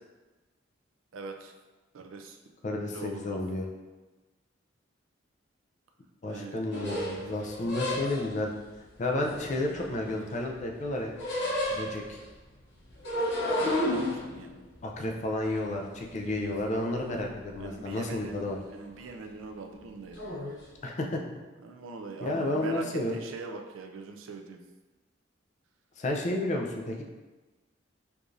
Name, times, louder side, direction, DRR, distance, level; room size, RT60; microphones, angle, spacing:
voice 1, 1.1-1.5 1.9-2.4 2.7-3.4 6.3-6.6 13.5-14.5 16.2-16.5 16.9-17.0 17.6-18.4 18.7-20.2 21.6-24.6, right 4 dB, 80° right, 3 dB, 0.4 m, -42 dB
voice 2, 2.6-3.7 6.2-8.5 9.0-11.1 11.7-12.2 14.8-18.6 20.8-21.2 22.2-23.2 26.0-27.0, left 1 dB, 35° left, 1 dB, 0.4 m, -31 dB
sound 1, 6.7-8.4 9.1-10.5 10.7-12.2 12.9-16.6 17.0-17.7 17.9-18.5 18.8-19.1 20.1-20.6, left 1 dB, 60° left, 1.0 m, -33 dB
4.7 x 2.5 x 2.6 m, 1.2 s
head